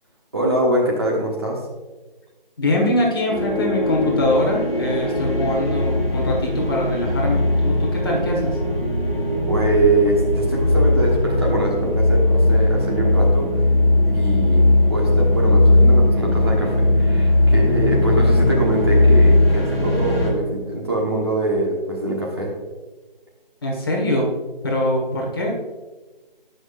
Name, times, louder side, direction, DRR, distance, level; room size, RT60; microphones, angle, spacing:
voice 1, 0.3-1.6 9.5-13.5 14.0-22.5, right 2 dB, 25° right, -2 dB, 1.3 m, -23 dB
voice 2, 2.6-8.6 23.6-24.3 24.6-25.5, left 1 dB, 25° left, -2 dB, 1.6 m, -23 dB
sound 1, 3.3-20.3, left 1 dB, 5° left, 3.0 m, -18 dB
18.5 x 6.3 x 2.5 m, 1.2 s
figure-of-eight pair, 170°, 29 cm